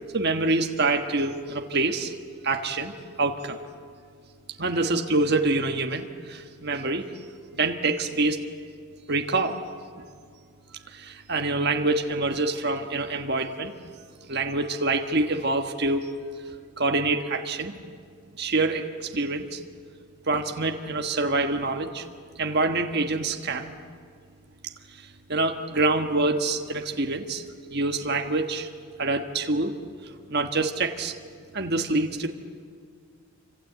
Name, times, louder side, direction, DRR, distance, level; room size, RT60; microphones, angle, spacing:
voice 1, 0.1-2.1 2.4-3.6 4.6-7.1 7.6-8.4 9.1-9.6 10.9-13.7 14.3-16.1 16.8-17.8 18.4-19.6 20.3-22.0 22.4-23.7 25.3-27.4 27.7-28.7 29.0-29.7 30.3-31.2 31.5-32.3, right 3 dB, 45° right, 3 dB, 1.4 m, -26 dB
28.0 x 25.5 x 8.2 m, 2.2 s
head